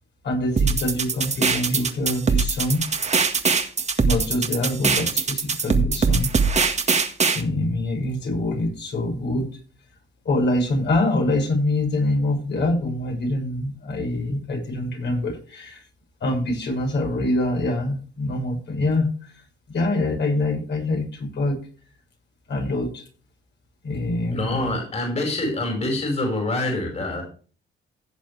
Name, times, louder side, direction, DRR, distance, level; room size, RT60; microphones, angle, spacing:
voice 1, 0.2-2.9 4.0-6.3 7.3-9.5 10.2-15.8 16.2-19.4 19.7-21.6 22.5-23.0 23.8-24.7, left 1 dB, 60° left, 2 dB, 6.7 m, -25 dB
sound 1, 0.6-7.4, right 5 dB, 35° right, 1.8 m, -22 dB
voice 2, 24.3-27.2, left 2 dB, 35° left, 1 dB, 5.2 m, -25 dB
16.5 x 7.2 x 3.4 m, 0.40 s
cardioid pair, 90°, 20 cm